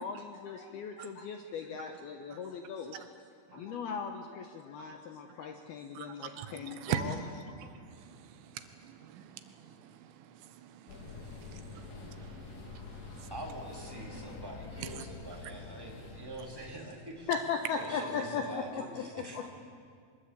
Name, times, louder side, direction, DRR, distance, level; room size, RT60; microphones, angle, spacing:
voice 1, 0.0-3.1 3.5-7.2 7.5-7.6 17.3-19.5, left 6 dB, 75° left, 5 dB, 2.4 m, -38 dB
voice 2, 6.0-7.0 7.6-13.3 14.8-14.9, right 12 dB, 80° right, 9 dB, 3.6 m, -43 dB
sound 1, 10.9-16.8, left 4 dB, 60° left, 4.4 m, -46 dB
voice 3, 13.3-17.3 17.7-19.4, right 1 dB, 5° right, -1 dB, 2.3 m, -44 dB
24.0 x 21.5 x 8.5 m, 2.1 s
omnidirectional pair, 5.6 m